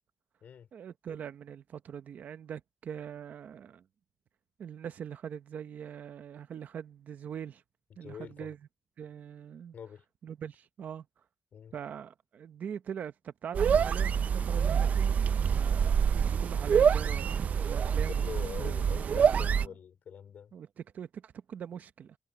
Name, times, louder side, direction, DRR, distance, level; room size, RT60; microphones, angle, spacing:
voice 1, 0.7-3.8 4.6-7.6 8.0-8.6 9.0-9.7 10.2-11.1 11.7-18.3 18.6-19.6 20.5-22.2, right 8 dB, 85° right, 0.9 m, -42 dB
voice 2, 8.0-8.5 9.7-10.0 11.5-11.8 18.1-20.5, left 8 dB, 85° left, 4.7 m, -44 dB
sound 1, 13.5-19.7, right 7 dB, 65° right, 0.5 m, -26 dB
wide cardioid pair, 135°, 3 cm